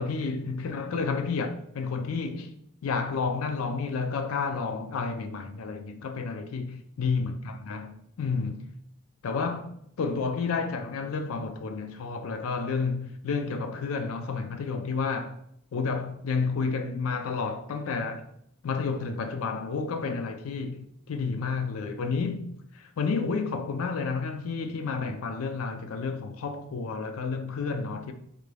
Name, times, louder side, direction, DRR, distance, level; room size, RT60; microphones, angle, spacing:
voice 1, 0.0-2.5 2.8-8.7 9.2-9.7 10.0-15.4 15.7-18.2 18.6-22.5 23.0-28.1, left 4 dB, 75° left, 0.4 m, -30 dB
3.8 x 3.2 x 2.2 m
head